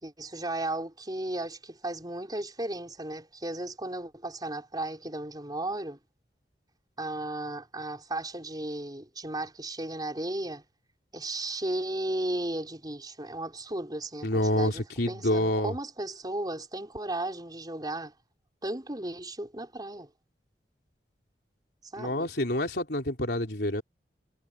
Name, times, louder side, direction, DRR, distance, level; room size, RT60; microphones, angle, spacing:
voice 1, 0.0-6.0 7.0-10.6 11.1-18.1 18.6-20.1 21.9-22.3, right 1 dB, 25° right, 5.0 m, -35 dB
voice 2, 14.2-15.7 22.0-23.8, left 1 dB, 65° left, 4.0 m, -27 dB
head